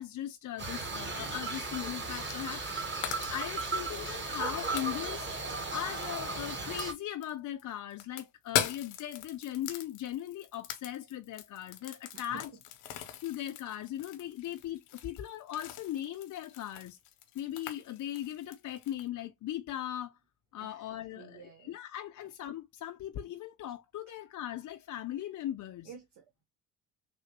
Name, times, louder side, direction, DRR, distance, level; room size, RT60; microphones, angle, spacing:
voice 1, 0.0-5.3 5.7-12.5 13.2-17.0 17.3-20.2 20.5-25.9, left 12 dB, 40° left, 0.5 m, -39 dB
sound 1, 0.6-6.9, right 3 dB, 25° right, 1.2 m, -36 dB
sound 2, 2.1-2.6 2.8-7.3 7.6-19.1, left 11 dB, 75° left, 0.8 m, -41 dB
voice 2, 12.1-12.4 20.6-21.7 25.8-26.4, right 7 dB, 70° right, 1.1 m, -51 dB
3.3 x 2.8 x 2.7 m
hypercardioid pair, 55°, 48 cm